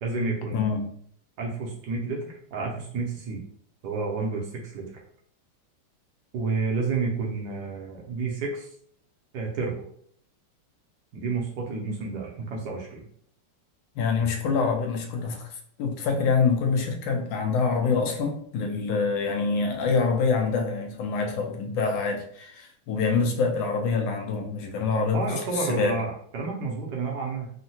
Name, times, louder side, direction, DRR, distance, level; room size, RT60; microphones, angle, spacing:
voice 1, 0.0-0.7 1.4-3.4 3.8-4.8 6.3-8.7 9.3-9.7 11.1-13.0 25.1-27.5, right 4 dB, 70° right, 0 dB, 1.1 m, -30 dB
voice 2, 0.5-0.9 14.0-15.5 15.8-25.3 25.5-25.9, left 4 dB, 80° left, 3 dB, 1.3 m, -25 dB
3.7 x 2.1 x 2.7 m, 0.62 s
omnidirectional pair, 2.1 m